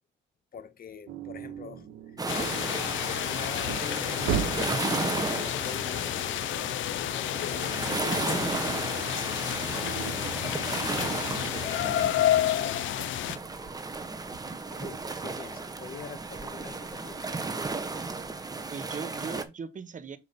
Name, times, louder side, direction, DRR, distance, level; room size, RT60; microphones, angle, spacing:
voice 1, 0.5-2.2 3.2-9.1 14.7-17.3, left 7 dB, 50° left, 1.2 m, -45 dB
sound 1, 1.1-4.9 6.3-8.4 8.7-14.5, right 9 dB, 75° right, 1.3 m, -39 dB
sound 2, 2.2-19.4, right 3 dB, 20° right, 1.1 m, -34 dB
sound 3, 2.3-13.4, left 12 dB, 75° left, 0.6 m, -30 dB
voice 2, 11.0-12.1 18.7-20.2, right 6 dB, 40° right, 1.2 m, -40 dB
6.8 x 5.0 x 4.1 m
cardioid pair, 90°, 20 cm